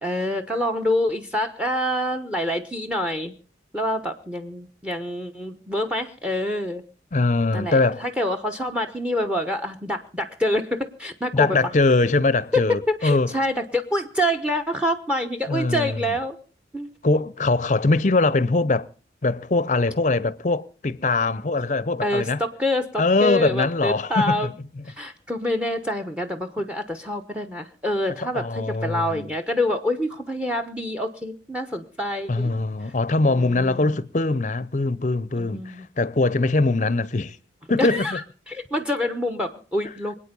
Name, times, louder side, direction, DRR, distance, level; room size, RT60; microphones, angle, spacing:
voice 1, 0.0-3.3 3.7-6.8 7.5-11.6 12.5-16.4 16.7-16.9 22.0-24.5 24.9-32.6 33.3-33.9 35.4-35.8 37.8-38.2 38.5-40.2, left 1 dB, 5° right, 1.0 m, -26 dB
voice 2, 7.1-8.0 11.3-13.3 15.5-16.0 17.0-18.9 19.2-22.4 23.0-24.5 28.2-29.3 32.3-37.4 37.7-38.1, left 3 dB, 45° left, 0.6 m, -22 dB
25.0 x 8.9 x 5.4 m
head